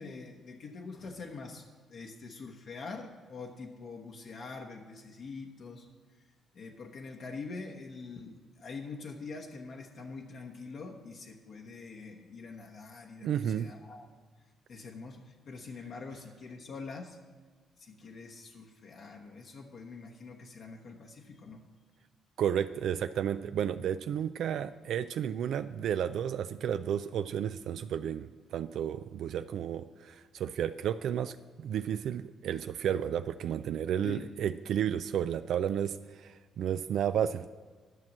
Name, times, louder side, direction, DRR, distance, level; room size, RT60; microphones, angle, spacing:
voice 1, 0.0-5.9 6.5-14.1 14.7-17.2 17.8-21.6 34.0-34.3, left 4 dB, 60° left, 1 dB, 1.0 m, -44 dB
voice 2, 13.2-13.7 22.4-37.5, right 9 dB, 75° right, 11 dB, 0.3 m, -32 dB
11.5 x 6.1 x 7.3 m, 1.5 s
cardioid pair, 90°, 0 cm